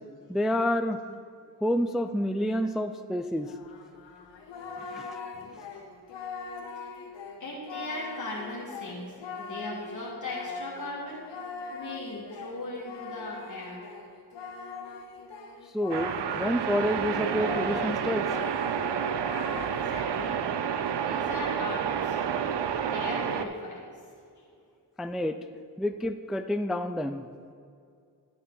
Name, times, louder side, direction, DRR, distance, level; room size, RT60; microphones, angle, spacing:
voice 1, 0.3-1.0 1.6-3.5 5.0-5.1 15.7-18.3 25.0-25.4 25.8-27.2, equal, ahead, 9 dB, 0.3 m, -28 dB
Singing, 3.4-16.5 16.8-20.0, left 4 dB, 85° left, 0.9 m, -41 dB
voice 2, 5.3-5.8 6.7-6.9 7.4-11.2 11.7-13.9 19.7-20.4 20.9-22.2 22.9-23.8 24.3-24.5, left 2 dB, 45° left, -4 dB, 1.6 m, -38 dB
sound 1, 15.9-23.5, right 8 dB, 75° right, 0.6 m, -30 dB
11.5 x 7.0 x 3.9 m, 2.4 s
cardioid pair, 40°, 42 cm